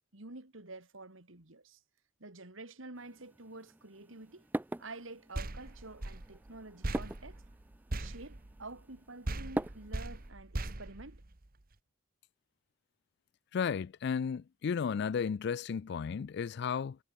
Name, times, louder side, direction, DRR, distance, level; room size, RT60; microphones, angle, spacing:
voice 1, 0.1-1.8 2.2-4.5 4.8-7.4 7.9-11.2, right 2 dB, 85° right, 2.9 m, -49 dB
sound 1, 2.9-10.3, right 1 dB, 10° right, 0.4 m, -43 dB
sound 2, 5.3-9.0 9.2-11.7, right 1 dB, 45° right, 1.4 m, -40 dB
voice 2, 13.5-17.0, left 6 dB, 60° left, 0.4 m, -33 dB
head